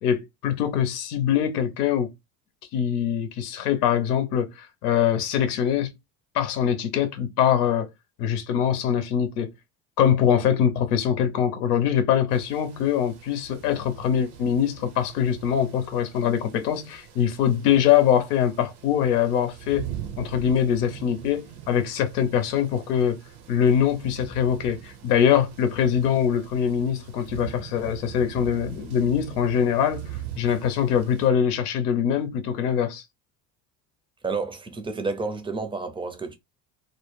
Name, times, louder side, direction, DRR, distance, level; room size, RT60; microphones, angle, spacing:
voice 1, 0.0-2.1 2.7-5.9 6.3-7.9 8.2-9.5 10.0-19.9 20.2-23.2 23.5-33.0, left 9 dB, 85° left, 0.7 m, -23 dB
sound 1, 12.3-31.3, right 11 dB, 75° right, 0.9 m, -42 dB
voice 2, 34.2-36.4, right 4 dB, 10° right, 0.5 m, -30 dB
2.2 x 2.1 x 3.2 m
supercardioid pair, 80°, 45 cm